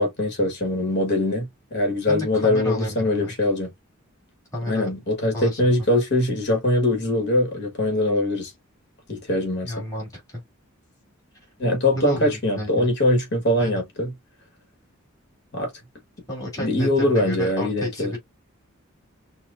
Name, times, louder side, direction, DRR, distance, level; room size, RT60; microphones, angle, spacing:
voice 1, 0.0-3.7 4.7-8.5 9.1-9.9 11.6-14.1 15.5-15.7 16.6-18.1, left 1 dB, 55° left, 1.5 m, -22 dB
voice 2, 2.1-3.3 4.5-4.9 5.3-5.6 9.6-10.4 11.9-12.9 13.6-13.8 16.3-18.2, left 1 dB, 15° left, 2.7 m, -31 dB
5.9 x 2.3 x 2.5 m
head